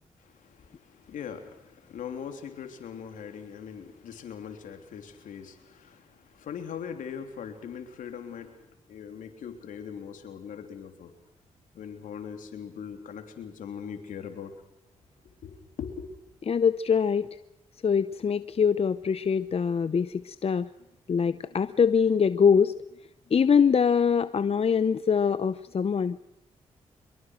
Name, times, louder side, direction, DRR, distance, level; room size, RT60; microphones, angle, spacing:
voice 1, 0.2-11.1 11.7-14.5 15.4-16.1, left 7 dB, 80° left, 3.4 m, -41 dB
voice 2, 16.5-17.3 17.8-20.7 21.1-22.7 23.3-26.2, left 6 dB, 50° left, 0.8 m, -23 dB
24.5 x 22.5 x 6.4 m
supercardioid pair, 50°, 13 cm